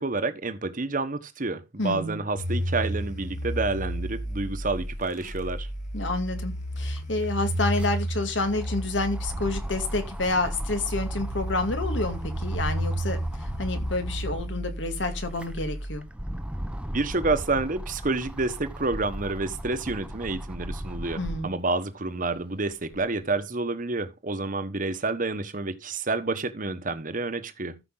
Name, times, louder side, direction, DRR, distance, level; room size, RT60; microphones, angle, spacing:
voice 1, 0.0-5.7 16.9-27.8, right 3 dB, 45° right, 1.2 m, -29 dB
voice 2, 1.8-2.2 5.9-16.0 21.2-21.5, left 2 dB, 75° left, 2.2 m, -29 dB
sound 1, 2.4-16.0, right 1 dB, 40° left, 1.7 m, -32 dB
sound 2, 6.5-6.6 6.8-14.6 15.1-21.6 22.1-23.3, equal, 5° right, 0.8 m, -37 dB
14.0 x 5.5 x 3.9 m
head